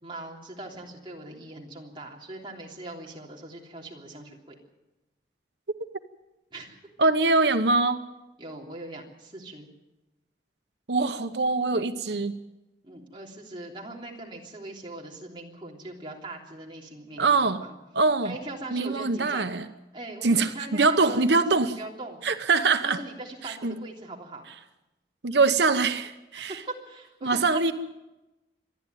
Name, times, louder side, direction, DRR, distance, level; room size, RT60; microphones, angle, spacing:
voice 1, 0.0-4.5 6.5-6.8 8.4-9.7 12.8-17.7 18.2-19.5 19.9-22.2 22.8-24.5 26.3-26.6 26.8-27.6, right 2 dB, 25° right, -2 dB, 3.2 m, -41 dB
voice 2, 7.0-8.0 10.9-12.4 17.2-17.6 17.9-18.4 18.7-19.6 20.2-21.8 22.2-23.0 23.4-23.8 25.2-26.6 27.2-27.7, right 3 dB, 75° right, 9 dB, 0.9 m, -23 dB
26.0 x 10.5 x 9.2 m, 1.0 s
head